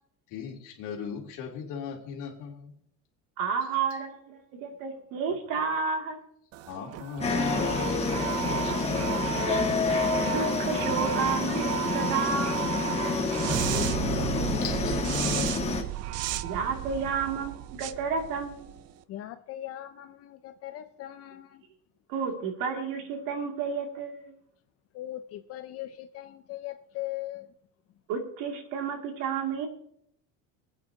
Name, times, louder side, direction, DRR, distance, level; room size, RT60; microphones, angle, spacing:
voice 1, 0.3-2.7 3.5-3.8 5.4-5.5 6.7-9.4 13.1-15.7, left 6 dB, 60° left, 1 dB, 2.9 m, -37 dB
voice 2, 3.4-6.2 10.2-12.7 16.4-18.8 22.1-24.3 28.1-29.7, right 6 dB, 70° right, 4 dB, 2.6 m, -31 dB
sound 1, 6.5-18.9, right 14 dB, 45° right, 0.5 m, -34 dB
sound 2, 7.2-15.8, left 4 dB, 20° left, 1.4 m, -28 dB
voice 3, 19.1-21.6 22.3-22.4 22.8-22.9 24.9-27.5, left 14 dB, 45° left, 9 dB, 0.6 m, -40 dB
24.5 x 9.0 x 2.8 m, 0.70 s
cardioid pair, 165°, 35 cm